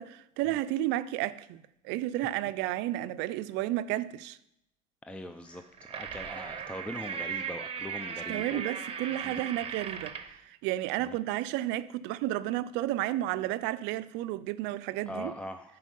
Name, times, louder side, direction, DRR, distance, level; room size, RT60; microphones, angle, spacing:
voice 1, 0.0-4.4 8.3-10.2 10.4-15.3, right 14 dB, 70° right, 0.5 m, -32 dB
voice 2, 5.1-8.6 9.2-9.3 11.0-11.2 15.1-15.8, left 1 dB, 5° left, 0.5 m, -41 dB
sound 1, 5.5-10.4, right 7 dB, 30° right, 0.9 m, -38 dB
9.7 x 4.7 x 5.3 m
supercardioid pair, 100°, 19 cm